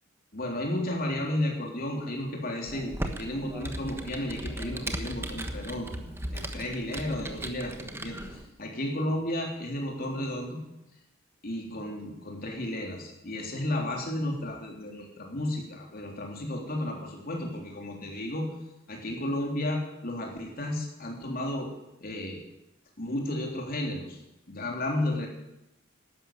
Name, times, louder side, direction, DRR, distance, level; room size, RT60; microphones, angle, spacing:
voice 1, 0.3-5.9 6.3-10.6 11.4-18.5 18.9-21.7 22.0-22.4 23.0-24.2 24.5-25.3, left 1 dB, 45° left, 0 dB, 3.5 m, -33 dB
Computer keyboard, 2.7-8.5, right 1 dB, 10° right, 1.2 m, -37 dB
12.5 x 11.0 x 9.1 m, 0.89 s
head